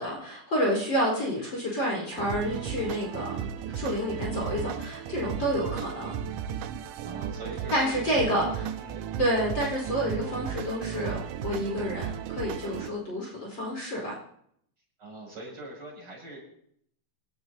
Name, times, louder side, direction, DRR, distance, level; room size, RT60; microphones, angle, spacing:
voice 1, 0.0-6.1 7.7-8.7 9.2-14.1, equal, 35° left, -3 dB, 4.9 m, -29 dB
sound 1, 2.1-12.9, right 8 dB, 80° right, 2.3 m, -35 dB
voice 2, 7.0-8.3 8.8-9.0 15.0-16.4, right 2 dB, 40° right, -4 dB, 7.6 m, -43 dB
27.0 x 12.5 x 2.8 m, 0.68 s
omnidirectional pair, 3.8 m